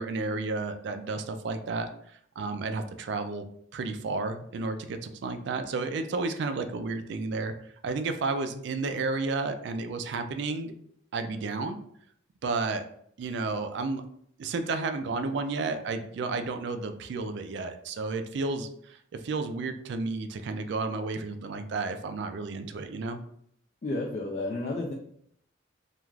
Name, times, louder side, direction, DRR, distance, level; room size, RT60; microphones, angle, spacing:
voice 1, 0.0-1.9 2.4-3.5 3.7-7.5 7.8-10.7 11.1-11.8 12.4-12.8 13.2-14.0 14.4-23.2, right 3 dB, 60° right, 7 dB, 0.3 m, -32 dB
voice 2, 23.8-24.9, left 2 dB, 35° left, -1 dB, 0.3 m, -31 dB
2.4 x 2.3 x 3.1 m, 0.66 s
head